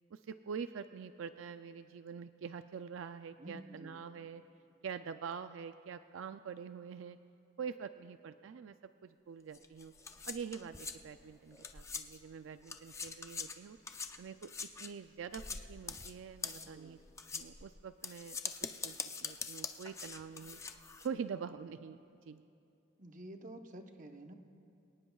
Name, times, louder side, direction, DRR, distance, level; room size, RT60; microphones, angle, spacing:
voice 1, 0.1-4.4 4.8-7.2 7.6-8.8 9.0-9.9 10.2-13.8 14.2-14.5 14.8-17.0 17.3-20.6 21.0-22.0 22.3-22.4, right 6 dB, 80° right, 10 dB, 0.4 m, -45 dB
voice 2, 3.4-4.0 16.5-17.0 23.0-24.3, right 1 dB, 40° right, 5 dB, 0.9 m, -50 dB
sound 1, 9.5-12.3 12.6-21.1, left 5 dB, 15° left, 0.5 m, -44 dB
26.0 x 18.0 x 2.4 m, 2.6 s
head